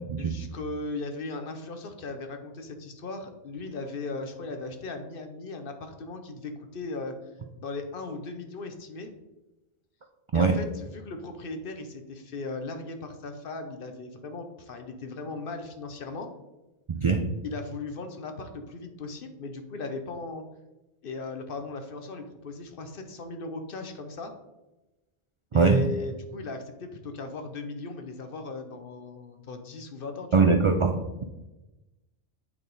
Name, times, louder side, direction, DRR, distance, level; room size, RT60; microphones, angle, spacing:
voice 1, 0.2-7.2 7.6-9.1 10.3-16.3 17.4-20.4 21.0-24.3 25.5-30.5, left 3 dB, 60° left, 6 dB, 0.9 m, -37 dB
voice 2, 10.3-10.6 16.9-17.2 25.5-25.9 30.3-31.2, right 4 dB, 50° right, 5 dB, 0.3 m, -22 dB
8.6 x 3.6 x 3.9 m, 1.0 s
omnidirectional pair, 1.1 m